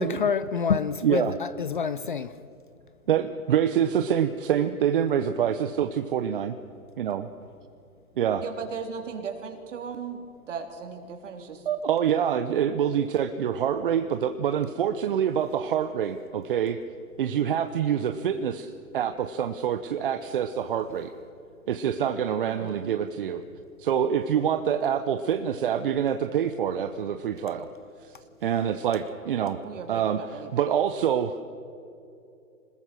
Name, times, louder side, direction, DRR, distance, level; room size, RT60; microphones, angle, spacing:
voice 1, 0.0-2.3, left 6 dB, 35° left, 0.5 m, -27 dB
voice 2, 1.0-1.4 3.1-6.6 7.0-7.2 8.2-8.4 11.7-16.8 17.2-21.1 21.7-23.4 23.8-27.7 28.1-28.2 28.4-29.6 29.9-31.4, right 9 dB, 35° right, 0.8 m, -26 dB
voice 3, 8.4-10.2 10.5-11.6 22.5-23.0 29.6-30.7, right 6 dB, 55° right, 3.6 m, -37 dB
26.0 x 20.5 x 6.3 m
hypercardioid pair, 150°, 44 cm